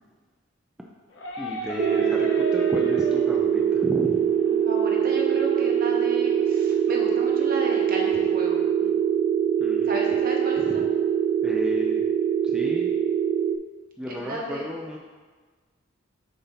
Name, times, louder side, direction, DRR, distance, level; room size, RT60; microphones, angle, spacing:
sound 1, 1.1-6.7, left 1 dB, 75° left, 0.9 m, -38 dB
voice 1, 1.4-4.2 9.6-9.9 10.6-10.8 11.4-12.0 12.4-12.9 14.0-15.0, equal, 5° right, -2 dB, 0.4 m, -33 dB
sound 2, 1.8-13.6, right 8 dB, 70° right, 0.4 m, -23 dB
voice 2, 4.4-8.9 9.9-10.8 14.1-14.7, right 1 dB, 50° right, -1 dB, 1.0 m, -34 dB
6.9 x 2.7 x 5.6 m, 1.4 s
head